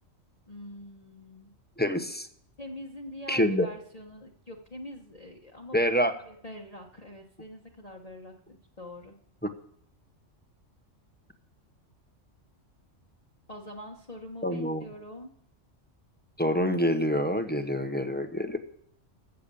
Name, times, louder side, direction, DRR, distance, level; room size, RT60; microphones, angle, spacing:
voice 1, 0.5-1.5 2.6-5.9 6.2-9.1 13.5-15.3, left 1 dB, 30° left, 0 dB, 1.2 m, -44 dB
voice 2, 1.8-2.3 3.3-3.7 5.7-6.1 9.4-9.5 14.4-14.8 16.4-18.6, equal, 10° left, 7 dB, 0.8 m, -26 dB
14.5 x 6.8 x 7.0 m, 0.66 s
omnidirectional pair, 1.3 m